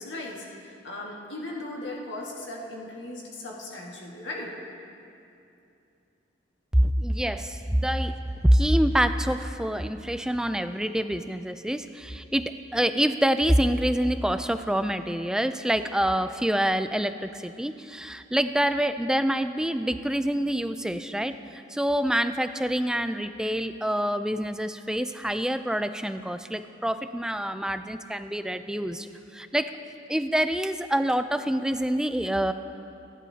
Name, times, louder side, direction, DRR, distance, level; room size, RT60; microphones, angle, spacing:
voice 1, 0.0-4.5, left 2 dB, 75° left, -2 dB, 1.8 m, -37 dB
voice 2, 6.7-29.8 30.1-32.5, equal, 5° right, 10 dB, 0.3 m, -26 dB
27.5 x 11.0 x 2.8 m, 2.6 s
head